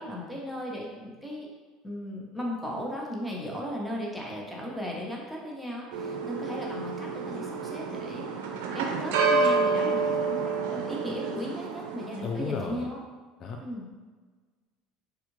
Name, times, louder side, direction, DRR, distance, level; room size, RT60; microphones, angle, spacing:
voice 1, 0.0-1.5 1.8-8.3 8.7-13.0 13.6-13.9, equal, 5° left, -3 dB, 0.8 m, -36 dB
sound 1, 5.9-12.5, right 4 dB, 90° right, 0.4 m, -29 dB
voice 2, 12.2-12.9 13.4-13.6, left 5 dB, 45° left, 2 dB, 0.3 m, -33 dB
3.5 x 2.4 x 3.1 m, 1.4 s
supercardioid pair, 110°, 0 cm